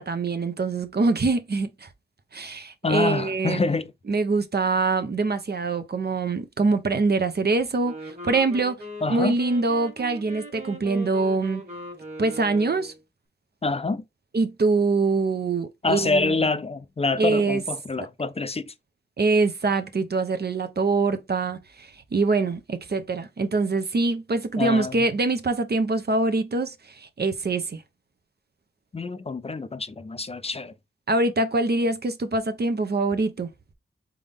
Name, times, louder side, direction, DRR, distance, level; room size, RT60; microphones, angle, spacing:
voice 1, 0.0-1.9 2.3-3.6 4.1-8.8 9.1-11.6 12.2-12.9 14.3-16.4 17.2-17.6 18.0-18.1 19.2-27.8 31.1-33.5, right 3 dB, 50° right, 0.7 m, -24 dB
voice 2, 2.8-3.9 9.0-9.4 13.6-14.0 15.8-18.7 24.6-25.0 28.9-30.7, left 3 dB, 30° left, 0.4 m, -26 dB
Wind instrument woodwind instrument, 7.8-13.0, right 1 dB, 35° right, 1.6 m, -39 dB
4.0 x 3.6 x 3.4 m
wide cardioid pair, 100°, 21 cm